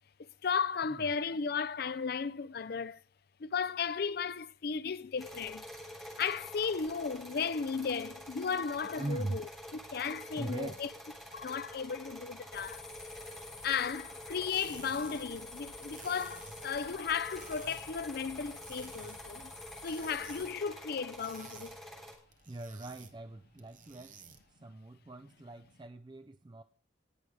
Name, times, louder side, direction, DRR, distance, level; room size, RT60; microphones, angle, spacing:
voice 1, 0.4-3.0 3.4-5.7 6.2-9.5 9.9-10.9 11.3-12.9 13.6-19.5 19.8-21.8, left 6 dB, 55° left, 0.5 m, -35 dB
sound 1, 5.2-22.1, equal, ahead, 3.2 m, -48 dB
voice 2, 8.9-9.4 10.4-10.8 22.5-24.2 24.5-26.6, right 2 dB, 25° right, 0.4 m, -41 dB
sound 2, 12.5-20.5, left 3 dB, 15° left, 1.5 m, -50 dB
sound 3, 14.3-24.6, right 6 dB, 40° right, 1.1 m, -56 dB
18.5 x 6.5 x 4.7 m
head